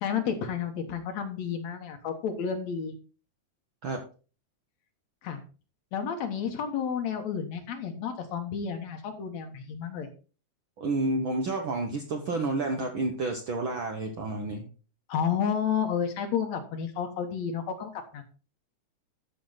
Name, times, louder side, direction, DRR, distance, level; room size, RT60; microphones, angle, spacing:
voice 1, 0.0-2.9 5.2-5.4 5.9-10.1 15.1-18.2, left 7 dB, 65° left, 6 dB, 2.4 m, -31 dB
voice 2, 10.8-14.7, right 2 dB, 60° right, 3 dB, 1.4 m, -30 dB
13.0 x 6.1 x 4.0 m, 0.36 s
omnidirectional pair, 3.5 m